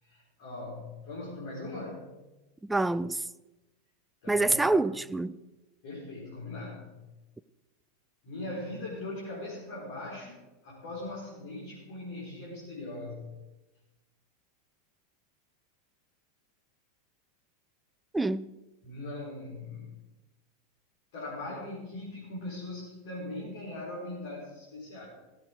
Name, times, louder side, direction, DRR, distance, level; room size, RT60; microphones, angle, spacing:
voice 1, 0.0-2.1 2.7-2.8 4.2-4.8 5.8-7.0 8.2-13.2 18.8-19.9 21.1-25.0, left 2 dB, 55° left, 4.3 m, -40 dB
voice 2, 2.6-3.3 4.3-5.4 18.1-18.5, right 2 dB, 5° right, 0.4 m, -26 dB
17.5 x 8.0 x 5.2 m
figure-of-eight pair, 85°, 0 cm